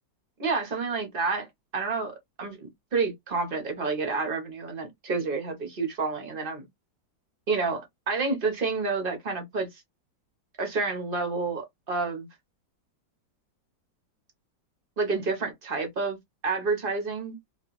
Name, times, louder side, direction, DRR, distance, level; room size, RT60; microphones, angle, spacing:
voice 1, 0.4-1.5 1.7-6.7 7.5-9.7 10.6-12.3 15.0-16.2 16.4-17.4, right 4 dB, 45° right, 0.7 m, -29 dB
2.9 x 2.5 x 2.9 m
omnidirectional pair, 2.1 m